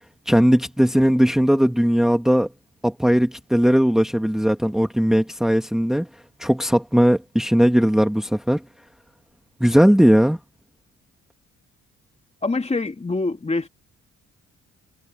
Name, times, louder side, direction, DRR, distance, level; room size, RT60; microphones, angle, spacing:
voice 1, 0.3-2.5 2.8-6.1 6.4-8.6 9.6-10.4, equal, ahead, 1.6 m, -18 dB
voice 2, 12.4-13.7, left 3 dB, 20° left, 2.7 m, -25 dB
cardioid pair, 90°, 30 cm